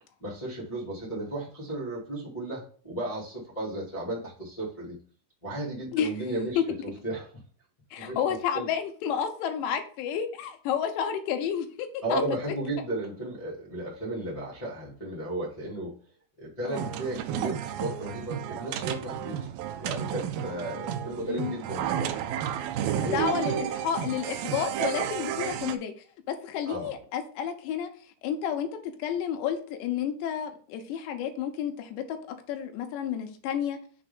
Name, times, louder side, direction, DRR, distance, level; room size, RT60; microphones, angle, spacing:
voice 1, 0.2-5.0 5.4-7.4 8.0-8.7 12.0-15.9 16.4-19.5 19.7-22.1 22.9-23.6 26.6-26.9, right 1 dB, 40° left, -7 dB, 0.4 m, -34 dB
voice 2, 7.9-12.2 16.7-16.8 21.3-21.6 23.0-25.9 26.3-27.9 28.2-32.2 32.5-33.8, left 8 dB, 85° left, 6 dB, 3.1 m, -31 dB
sound 1, 16.7-25.8, right 10 dB, 85° right, 2.1 m, -32 dB
6.7 x 3.3 x 5.4 m, 0.43 s
omnidirectional pair, 4.9 m